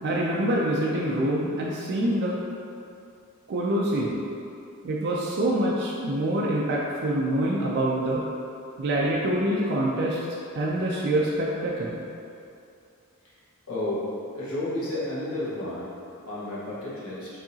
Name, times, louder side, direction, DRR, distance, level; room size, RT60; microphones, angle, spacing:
voice 1, 0.0-2.3 3.5-4.2 4.8-8.2 8.8-10.2 10.5-12.0, right 1 dB, 50° right, -4 dB, 0.4 m, -25 dB
voice 2, 13.7-14.1 14.3-15.9 16.2-17.3, left 1 dB, 75° left, -9 dB, 1.2 m, -31 dB
4.7 x 2.8 x 2.7 m, 2.6 s
head